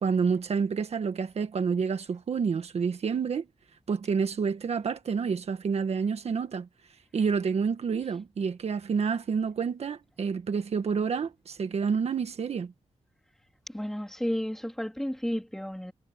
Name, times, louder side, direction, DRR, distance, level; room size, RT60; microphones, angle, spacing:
voice 1, 0.0-3.5 3.9-6.7 7.1-12.7, right 6 dB, 65° right, 1.5 m, -28 dB
voice 2, 13.7-15.9, equal, 5° left, 3.0 m, -32 dB
wide cardioid pair, 160°, 11 cm